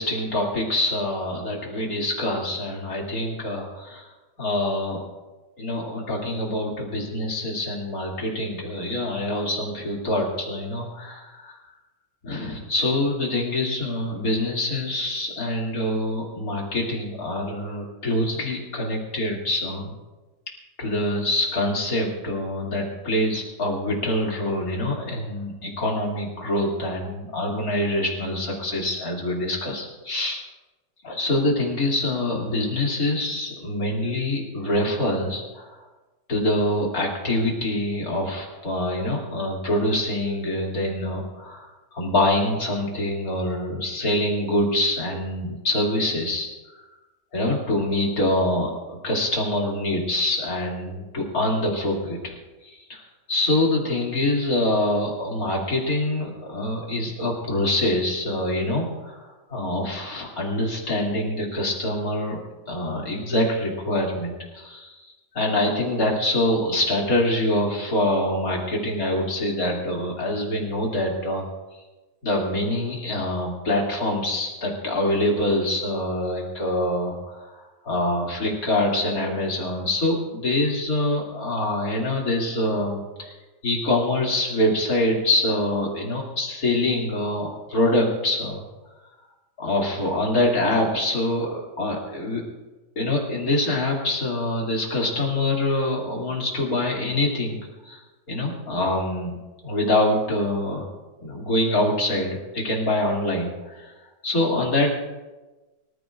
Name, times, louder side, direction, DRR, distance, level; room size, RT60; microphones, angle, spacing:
voice 1, 0.0-4.1 4.4-5.0 5.6-11.6 12.2-19.9 20.8-30.4 31.0-35.8 36.3-41.7 41.9-46.8 47.3-52.3 52.6-53.0 53.3-62.4 62.7-71.4 72.2-83.3 83.6-88.6 89.6-92.4 93.0-98.0 98.3-99.4 99.6-100.9 101.2-103.9 104.2-104.9, left 1 dB, 50° left, -2 dB, 3.2 m, -25 dB
25.0 x 14.5 x 2.5 m, 1.2 s
omnidirectional pair, 2.0 m